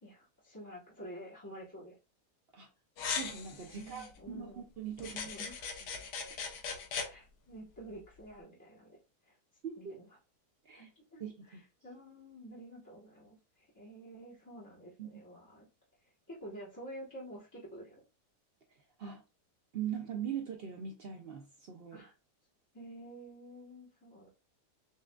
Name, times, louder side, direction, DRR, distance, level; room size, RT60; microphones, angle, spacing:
voice 1, 0.0-1.9 3.7-4.7 5.0-5.7 6.6-6.7 7.1-9.0 9.2-9.4 9.8-10.2 10.7-15.7 16.0-18.0 21.9-22.1 22.7-24.3, right 1 dB, 15° left, 0.9 m, -50 dB
sound 1, 3.0-4.1 5.0-7.1, left 5 dB, 80° left, 1.4 m, -39 dB
voice 2, 3.1-5.2 9.6-10.0 10.7-10.9 11.2-11.6 15.0-15.2 19.0-19.2 19.7-22.0, right 8 dB, 80° right, 0.5 m, -41 dB
6.7 x 2.4 x 2.2 m
omnidirectional pair, 1.7 m